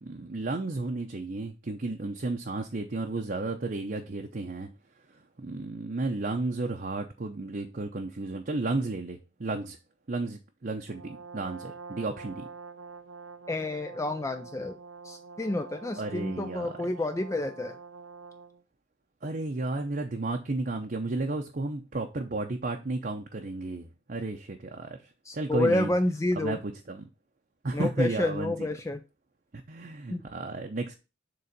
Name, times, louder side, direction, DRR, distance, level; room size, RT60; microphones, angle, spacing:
voice 1, 0.0-4.7 5.1-9.8 10.1-12.5 16.0-16.7 19.2-25.0 25.3-25.9 26.4-27.1 27.6-28.7 29.7-30.9, right 2 dB, 45° right, 3 dB, 0.7 m, -33 dB
Brass instrument, 10.9-18.6, right 4 dB, 90° right, 0.7 m, -46 dB
voice 2, 13.5-14.8 15.0-17.8 25.3-26.6 27.7-29.0 30.1-30.2, left 2 dB, 15° left, 8 dB, 0.3 m, -29 dB
6.9 x 3.8 x 5.1 m, 0.29 s
head